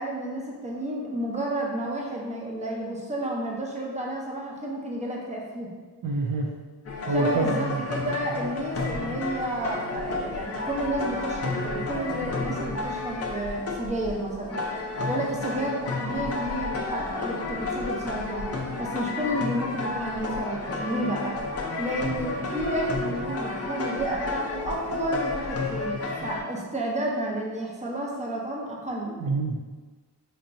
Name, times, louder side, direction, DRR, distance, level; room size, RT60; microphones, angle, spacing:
voice 1, 0.0-5.7 7.1-14.6 15.1-18.4 18.8-21.4 21.8-29.1, right 1 dB, 20° right, -2 dB, 0.7 m, -31 dB
voice 2, 6.0-6.5 7.1-7.8 29.2-29.6, right 3 dB, 55° right, 0 dB, 0.5 m, -26 dB
sound 1, 6.9-26.4, left 3 dB, 40° left, 0.6 m, -31 dB
4.5 x 2.8 x 2.6 m, 1.4 s
wide cardioid pair, 135°, 39 cm